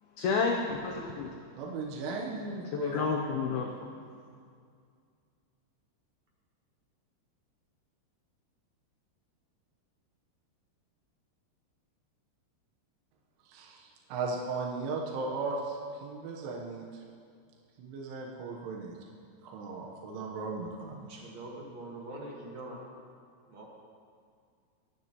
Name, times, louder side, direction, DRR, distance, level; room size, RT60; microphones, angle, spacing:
voice 1, 0.2-1.3 2.7-3.7, left 5 dB, 85° left, 2 dB, 2.1 m, -30 dB
voice 2, 1.6-3.1 13.5-17.0 17.8-18.9 19.4-21.1, right 3 dB, 90° right, -1 dB, 3.6 m, -37 dB
voice 3, 21.1-22.8 23.5-23.7, right 2 dB, 60° right, -3 dB, 2.0 m, -43 dB
26.5 x 9.7 x 3.0 m, 2.2 s
omnidirectional pair, 5.4 m